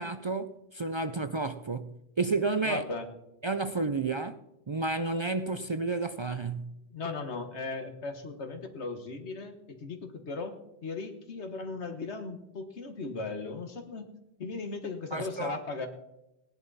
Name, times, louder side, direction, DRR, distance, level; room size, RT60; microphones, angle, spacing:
voice 1, 0.0-2.8 3.4-4.4 4.7-6.7 15.1-15.6, right 3 dB, 45° right, 0.4 m, -31 dB
voice 2, 2.6-3.1 6.9-10.6 10.8-14.1 14.4-15.9, left 3 dB, 85° left, 1.7 m, -37 dB
18.0 x 10.5 x 4.1 m
omnidirectional pair, 1.1 m